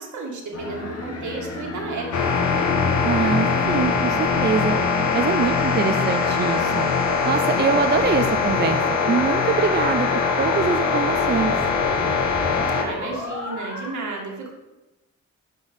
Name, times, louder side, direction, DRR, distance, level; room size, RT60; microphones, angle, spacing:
voice 1, 0.0-2.7 12.7-14.5, right 3 dB, 85° right, 0 dB, 2.3 m, -33 dB
sound 1, 0.5-14.0, left 2 dB, 55° left, 2.6 m, -33 dB
sound 2, 2.1-12.8, left 5 dB, 85° left, 1.5 m, -22 dB
voice 2, 3.0-4.8 5.1-6.9 7.2-8.8 9.1-11.5, right 6 dB, 35° right, 8 dB, 0.6 m, -24 dB
10.5 x 4.6 x 7.2 m, 1.0 s
wide cardioid pair, 125°, 29 cm